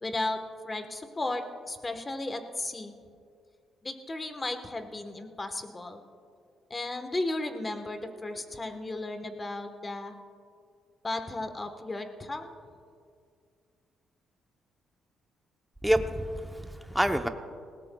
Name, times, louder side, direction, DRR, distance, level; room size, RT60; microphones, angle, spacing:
voice 1, 0.0-2.9 3.8-6.0 6.7-10.1 11.0-12.6, left 2 dB, 25° left, 7 dB, 1.2 m, -35 dB
voice 2, 15.8-17.3, equal, 5° right, 7 dB, 0.8 m, -27 dB
19.5 x 17.0 x 2.3 m, 2.2 s
cardioid pair, 90°, 0 cm